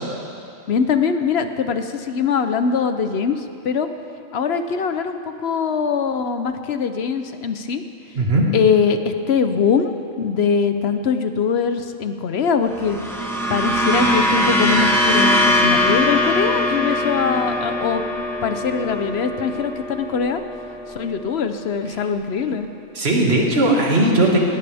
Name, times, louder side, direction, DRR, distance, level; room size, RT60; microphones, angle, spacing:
voice 1, 0.7-3.9 4.3-7.8 8.5-13.0 13.5-18.0 18.4-20.4 20.9-22.7, left 6 dB, 55° left, 8 dB, 1.0 m, -22 dB
voice 2, 8.2-8.5 22.9-24.4, right 1 dB, 50° right, -2 dB, 2.3 m, -17 dB
sound 1, 12.7-21.2, left 1 dB, ahead, 1.4 m, -21 dB
19.5 x 17.5 x 3.5 m, 2.6 s
omnidirectional pair, 1.4 m